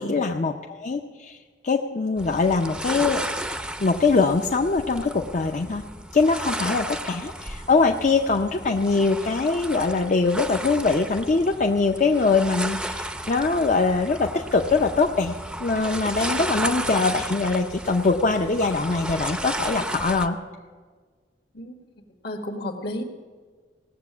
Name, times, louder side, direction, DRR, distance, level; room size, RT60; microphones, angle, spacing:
voice 1, 0.0-1.4 1.6-3.2 3.8-5.8 6.1-20.4, left 4 dB, 45° left, 3 dB, 0.6 m, -22 dB
sound 1, 2.2-20.3, right 1 dB, 5° right, 0.6 m, -33 dB
voice 2, 22.2-23.0, left 1 dB, 65° left, 4 dB, 1.7 m, -32 dB
17.5 x 7.6 x 7.2 m, 1.5 s
head